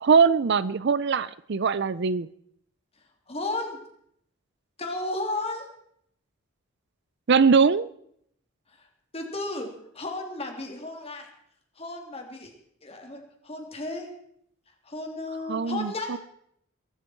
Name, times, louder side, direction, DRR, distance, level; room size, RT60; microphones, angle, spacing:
voice 1, 0.0-2.3 7.3-7.9 15.5-16.2, right 5 dB, 55° right, 18 dB, 0.5 m, -21 dB
voice 2, 3.3-3.8 4.8-5.7 9.1-11.3 11.8-12.5 12.8-14.1 14.8-16.2, left 2 dB, 30° left, 3 dB, 3.2 m, -34 dB
22.5 x 13.0 x 4.6 m, 0.69 s
head